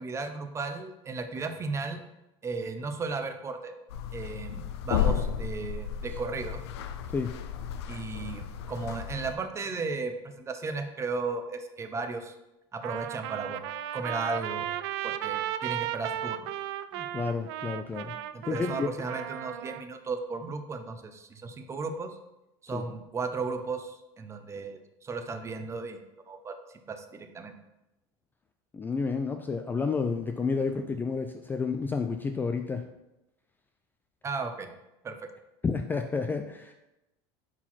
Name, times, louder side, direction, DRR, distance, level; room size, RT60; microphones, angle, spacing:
voice 1, 0.0-2.0 2.4-3.7 4.1-6.6 7.9-12.4 12.7-14.7 15.0-16.5 18.3-22.2 22.6-26.0 26.3-26.6 26.9-27.6 34.2-34.7 35.0-35.3, right 4 dB, 20° right, 7 dB, 0.6 m, -35 dB
sound 1, 3.9-9.4, left 8 dB, 85° left, 0.5 m, -33 dB
Trumpet, 12.8-19.8, right 12 dB, 75° right, 0.4 m, -35 dB
voice 2, 17.0-18.1 18.5-18.9 22.7-22.8 28.7-32.8 35.6-36.7, left 4 dB, 15° left, 6 dB, 0.3 m, -30 dB
4.4 x 4.3 x 5.7 m, 0.93 s
supercardioid pair, 120°, 14 cm